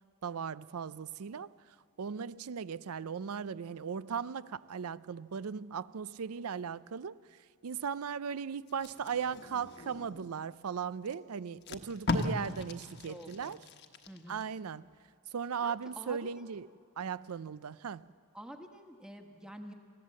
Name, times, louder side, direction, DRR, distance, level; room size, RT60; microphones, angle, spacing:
voice 1, 0.2-1.5 2.0-7.2 7.6-13.6 14.3-14.8 15.3-16.7 17.0-18.0, right 6 dB, 90° right, 0.5 m, -37 dB
Packing tape duct tape, 8.7-10.3 11.0-11.1 11.5-14.5 14.9-15.1, left 3 dB, 50° left, 1.2 m, -38 dB
voice 2, 13.0-13.6 14.1-14.4 15.6-16.3 18.3-19.7, equal, 5° right, 1.3 m, -48 dB
28.0 x 15.0 x 7.5 m
head